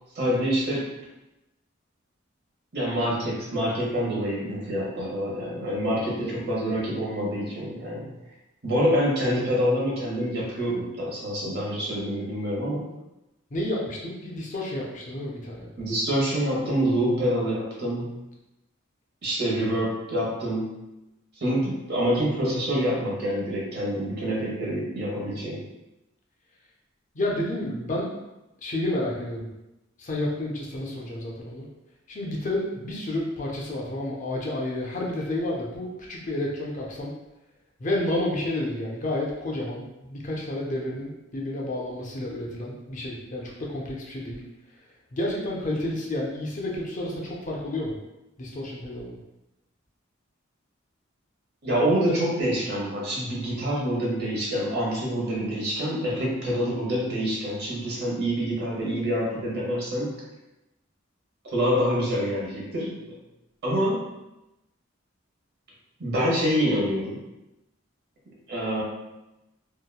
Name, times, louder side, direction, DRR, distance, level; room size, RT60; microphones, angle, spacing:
voice 1, 0.1-0.8 2.7-8.1 8.6-12.8 15.8-18.2 19.2-20.7 21.4-25.6 51.6-60.1 61.4-63.1 63.6-64.0 66.0-67.2 68.5-68.8, equal, 55° right, -4 dB, 0.8 m, -26 dB
voice 2, 13.5-15.7 27.1-28.2 28.6-29.5 30.0-31.7 32.1-37.1 37.8-44.4 45.1-47.9 48.4-49.2, left 1 dB, 40° left, -2 dB, 0.5 m, -30 dB
2.8 x 2.1 x 2.2 m, 0.95 s
head